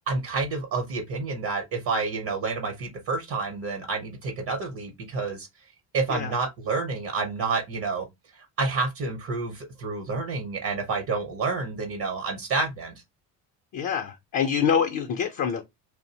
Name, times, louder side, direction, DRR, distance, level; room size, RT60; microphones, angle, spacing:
voice 1, 0.1-5.5 5.9-8.1 8.3-13.0, right 4 dB, 50° right, 0.8 m, -29 dB
voice 2, 13.7-15.6, left 7 dB, 45° left, 0.6 m, -25 dB
2.5 x 2.0 x 2.7 m
supercardioid pair, 75°, 45 cm